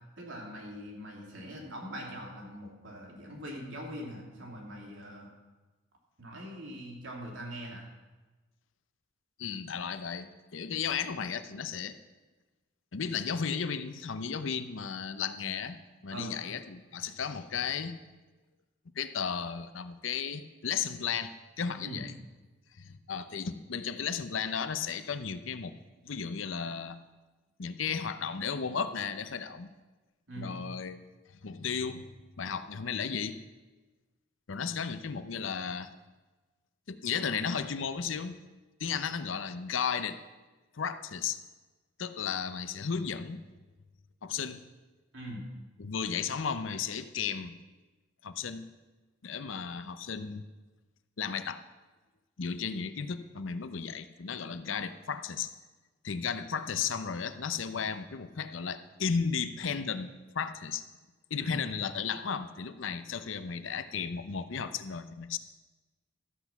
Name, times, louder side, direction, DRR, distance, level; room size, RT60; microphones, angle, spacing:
voice 1, 0.2-5.3 6.2-7.8 16.1-16.3 21.8-22.0 30.3-30.6 45.1-45.5 61.4-61.6, equal, 75° right, -1 dB, 3.0 m, -42 dB
voice 2, 9.4-12.0 12.9-15.8 16.0-18.0 19.0-22.2 22.8-25.7 26.0-27.0 27.6-29.7 30.4-31.0 31.4-33.4 34.5-35.9 36.9-38.3 38.8-40.2 40.7-41.4 42.0-43.4 44.2-44.6 45.8-47.5 48.2-48.7 49.2-50.4 51.2-51.6 52.4-55.5 56.0-60.1 60.3-60.8 61.3-65.4, left 6 dB, 85° left, 11 dB, 0.7 m, -34 dB
13.0 x 8.1 x 5.9 m, 1.2 s
head